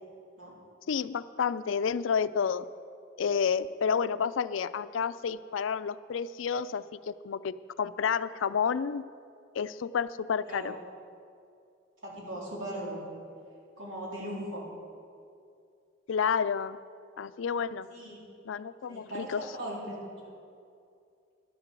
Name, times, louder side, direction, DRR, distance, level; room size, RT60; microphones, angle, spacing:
voice 1, 0.9-2.6 3.2-9.0 9.5-10.7 16.1-16.8 17.2-17.9 18.5-19.5, left 6 dB, 75° left, 15 dB, 0.4 m, -30 dB
voice 2, 12.0-13.0 13.8-14.7 17.9-18.2 18.9-20.0, right 1 dB, 85° right, -4 dB, 3.5 m, -38 dB
11.5 x 9.7 x 6.9 m, 2.5 s
head